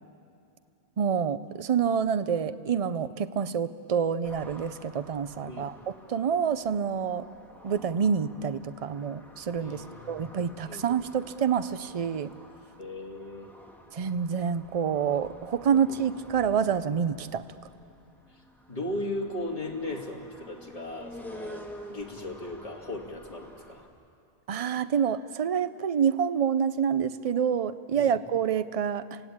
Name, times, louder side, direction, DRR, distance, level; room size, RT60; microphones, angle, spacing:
voice 1, 1.0-5.7 6.1-7.3 7.6-12.3 13.9-17.5 24.5-29.2, right 7 dB, 40° right, 13 dB, 0.6 m, -27 dB
sound 1, 4.2-23.9, equal, ahead, 2.1 m, -49 dB
voice 2, 9.6-10.8 12.8-13.5 15.7-16.0 18.7-23.8 27.9-28.1, left 1 dB, 35° left, 0 dB, 2.5 m, -37 dB
28.5 x 17.0 x 8.8 m, 2.5 s
omnidirectional pair, 1.0 m